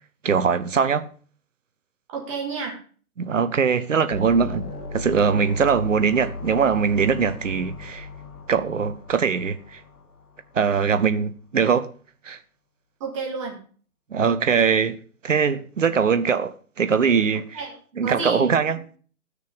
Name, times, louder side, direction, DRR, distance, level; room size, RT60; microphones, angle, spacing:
voice 1, 0.2-1.1 3.2-4.7 4.9-8.1 8.5-9.8 10.5-11.9 12.2-12.4 14.1-15.0 15.2-17.6 18.0-18.8, right 6 dB, 55° right, 1.2 m, -21 dB
voice 2, 2.1-2.8 13.0-13.6 17.5-17.7 18.0-18.8, right 5 dB, 20° right, 2.0 m, -30 dB
sound 1, 4.1-10.6, left 4 dB, 10° left, 0.7 m, -37 dB
13.5 x 6.6 x 5.0 m
figure-of-eight pair, 145°, 45 cm